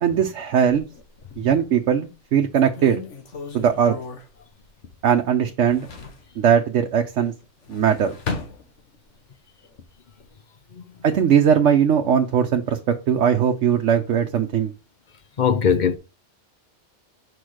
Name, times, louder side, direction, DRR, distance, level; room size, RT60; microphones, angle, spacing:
voice 1, 0.0-0.8 1.4-3.0 3.5-4.0 5.0-5.9 6.4-7.3 7.7-8.2 11.0-12.8 13.1-14.7, right 8 dB, 80° right, 1.1 m, -19 dB
sound 1, 0.7-1.6 2.1-2.2 2.5-5.2 5.5-6.3 7.4-9.2 9.6-10.3, left 4 dB, 80° left, 1.6 m, -36 dB
voice 2, 15.4-16.0, left 7 dB, 50° left, 0.6 m, -19 dB
6.2 x 4.9 x 4.9 m
omnidirectional pair, 1.2 m